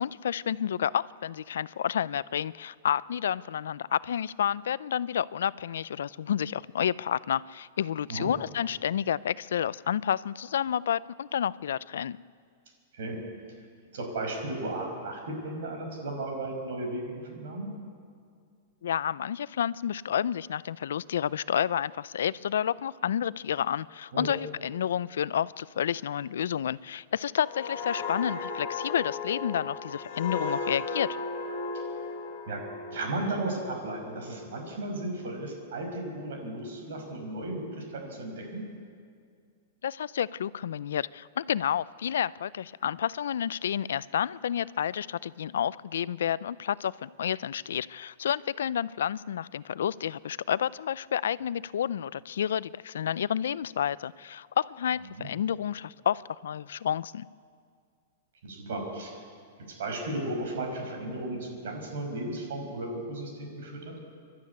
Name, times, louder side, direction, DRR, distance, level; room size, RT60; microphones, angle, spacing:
voice 1, 0.0-12.2 18.8-31.1 39.8-57.3, left 9 dB, 85° left, 19 dB, 0.4 m, -30 dB
voice 2, 13.9-17.7 24.1-24.3 32.5-32.6 32.9-38.6 55.1-55.3 58.4-59.2 59.8-63.9, right 2 dB, 60° right, 2 dB, 5.5 m, -35 dB
sound 1, 27.4-34.9 35.3-35.5, left 4 dB, 40° left, 3.0 m, -36 dB
25.5 x 12.0 x 9.6 m, 2.2 s
supercardioid pair, 180°, 0 cm